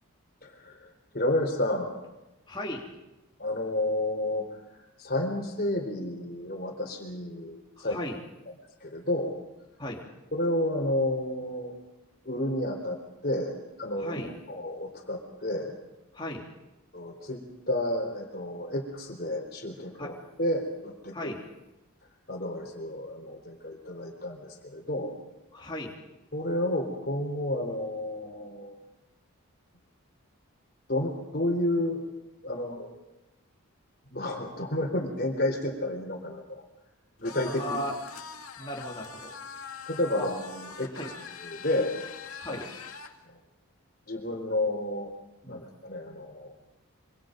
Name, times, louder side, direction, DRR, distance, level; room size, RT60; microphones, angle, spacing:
voice 1, 0.4-2.0 3.4-4.5 5.0-8.0 8.8-9.4 10.3-11.8 12.2-14.2 14.5-15.7 16.9-20.1 20.4-21.3 22.3-25.2 26.3-28.8 30.9-32.1 32.4-32.9 34.1-36.6 37.2-37.8 39.9-41.1 41.4-41.9 42.5-42.6 43.3-43.4 44.1-45.1 45.4-46.5, left 1 dB, 45° left, 3 dB, 3.9 m, -31 dB
voice 2, 2.5-2.8 7.8-8.2 9.8-10.1 14.0-14.3 16.1-16.5 20.0-20.1 21.1-21.4 25.5-26.0 37.4-38.0 38.6-39.9 40.2-40.3 40.7-41.1 42.4-42.7 45.4-45.6, left 1 dB, 20° left, -1 dB, 3.1 m, -37 dB
sound 1, 37.2-43.1, left 5 dB, 80° left, 2.2 m, -43 dB
26.0 x 25.0 x 5.3 m, 0.99 s
head